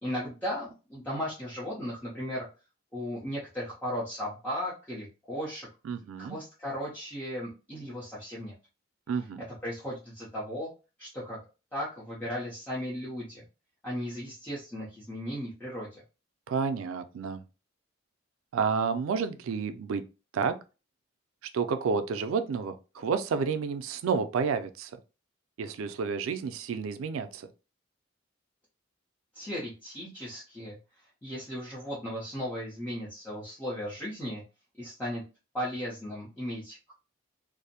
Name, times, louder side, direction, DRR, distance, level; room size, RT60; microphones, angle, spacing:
voice 1, 0.0-2.4 2.9-5.7 6.2-8.5 9.5-10.7 11.0-11.4 11.7-13.4 13.8-16.0 29.3-30.8 31.2-34.4 34.8-35.2 35.5-36.9, equal, 10° left, 0.6 m, -36 dB
voice 2, 5.8-6.4 9.1-9.4 16.5-17.4 18.5-20.0 20.3-20.5 21.5-24.9 25.6-27.5, right 5 dB, 90° right, 0.3 m, -30 dB
2.5 x 2.0 x 2.7 m
head